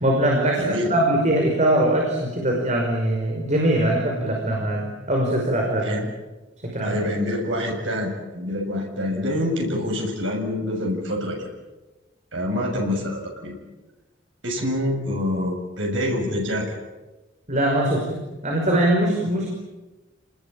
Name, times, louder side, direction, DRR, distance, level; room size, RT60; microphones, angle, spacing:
voice 1, 0.0-6.1 6.6-7.0 17.5-19.5, right 1 dB, 40° right, 0 dB, 5.5 m, -22 dB
voice 2, 0.6-0.9 5.8-6.0 6.8-11.5 12.3-13.5 14.4-16.7, left 1 dB, 80° right, 1 dB, 7.0 m, -26 dB
30.0 x 20.5 x 8.9 m, 1.1 s
head